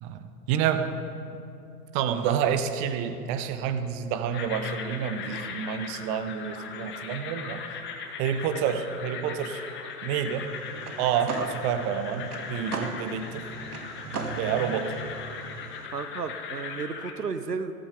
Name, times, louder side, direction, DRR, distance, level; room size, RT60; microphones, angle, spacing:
voice 1, 0.0-0.9 1.9-7.6 8.2-9.6 10.0-10.5 11.0-13.4 14.4-15.0, right 8 dB, 15° right, 10 dB, 0.4 m, -28 dB
sound 1, 4.3-17.1, left 6 dB, 25° left, 1.4 m, -39 dB
sound 2, 10.4-15.9, right 4 dB, 70° right, 1.6 m, -38 dB
voice 2, 15.9-17.7, right 5 dB, 90° right, 10 dB, 1.0 m, -33 dB
14.5 x 14.0 x 5.0 m, 2.6 s
figure-of-eight pair, 105°, 46 cm